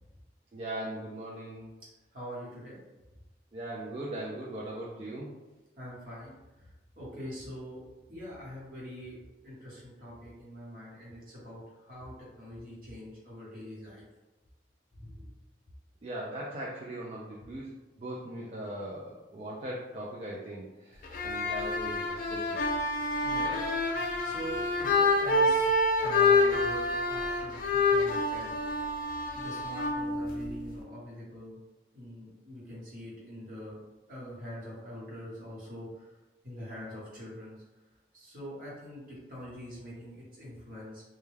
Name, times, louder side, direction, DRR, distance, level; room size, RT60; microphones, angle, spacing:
voice 1, 0.5-1.7 3.5-5.3 16.0-17.7 18.0-22.6 23.4-23.6, right 1 dB, 35° right, -5 dB, 0.3 m, -39 dB
voice 2, 2.1-2.8 5.8-7.8 8.1-9.2 9.4-14.0 14.9-15.3 23.2-23.5 24.2-25.7 26.0-28.6 29.3-31.6 31.9-33.8 34.1-36.1 36.4-37.6 38.1-41.0, equal, 50° right, -7 dB, 1.1 m, -44 dB
sound 1, 21.0-30.8, left 2 dB, 50° left, 0.3 m, -28 dB
2.2 x 2.2 x 3.1 m, 1.1 s
head